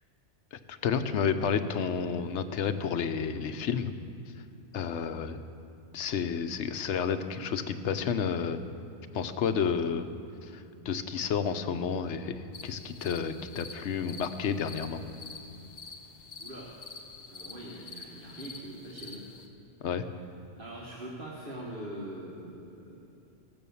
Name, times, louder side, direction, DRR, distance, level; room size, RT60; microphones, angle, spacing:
voice 1, 0.5-3.9 4.7-5.4 5.9-8.6 9.1-10.0 10.4-12.3 12.6-15.0 19.8-20.0, left 7 dB, 80° left, 10 dB, 1.0 m, -31 dB
sound 1, 12.5-19.5, left 4 dB, 60° left, 1.2 m, -47 dB
voice 2, 16.4-16.7 17.3-19.2 20.1-20.2 20.6-23.0, right 1 dB, 50° right, -5 dB, 1.6 m, -42 dB
15.5 x 7.1 x 7.0 m, 2.6 s
omnidirectional pair, 1.2 m